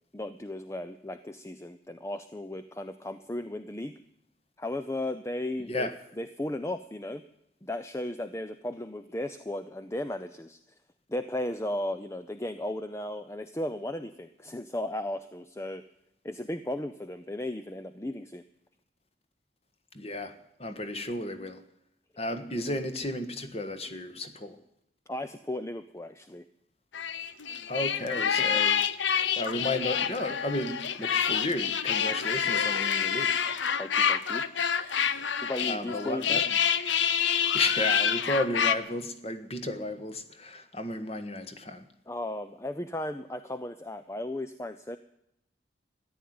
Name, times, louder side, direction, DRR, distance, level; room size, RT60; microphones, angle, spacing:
voice 1, 0.1-3.9 4.6-5.9 6.2-7.2 7.6-10.6 11.1-15.8 16.2-18.4 25.1-26.5 28.4-28.6 33.8-34.4 35.4-36.4 42.1-45.0, left 1 dB, 15° left, 10 dB, 0.5 m, -35 dB
voice 2, 19.9-21.6 22.2-24.6 27.7-28.8 29.3-33.4 35.6-36.5 37.5-41.8, left 1 dB, 35° left, 8 dB, 1.4 m, -33 dB
sound 1, 26.9-38.7, left 7 dB, 85° left, 0.8 m, -27 dB
14.0 x 10.5 x 9.5 m, 0.78 s
head